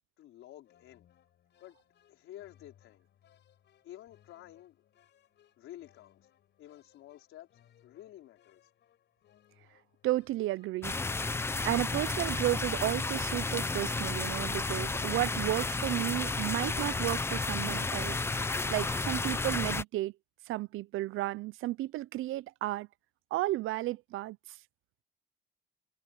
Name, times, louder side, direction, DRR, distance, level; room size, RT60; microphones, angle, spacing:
voice 1, 0.2-1.1 1.6-1.8 2.1-3.1 3.8-4.8 5.6-6.3 6.6-7.5 7.8-8.6, left 13 dB, 80° left, 4.7 m, -51 dB
sound 1, 0.6-14.4, left 11 dB, 55° left, 6.9 m, -66 dB
voice 2, 10.0-11.4 11.6-18.2 18.7-20.1 20.5-22.9 23.3-24.4, right 17 dB, 75° right, 0.5 m, -33 dB
sound 2, 10.8-19.8, left 3 dB, 10° left, 0.6 m, -32 dB
cardioid pair, 165°, 21 cm